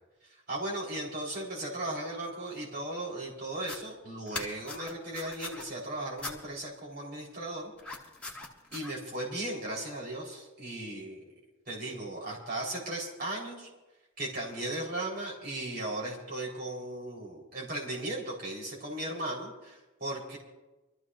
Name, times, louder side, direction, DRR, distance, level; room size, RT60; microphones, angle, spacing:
voice 1, 0.5-7.7 8.7-11.3 11.7-13.7 14.2-20.4, right 1 dB, 45° right, -3 dB, 3.9 m, -37 dB
sound 1, 3.6-3.8 4.3-5.6 6.2-6.4 7.8-8.9, left 3 dB, 5° left, 1.7 m, -40 dB
26.5 x 14.0 x 2.5 m, 1.1 s
head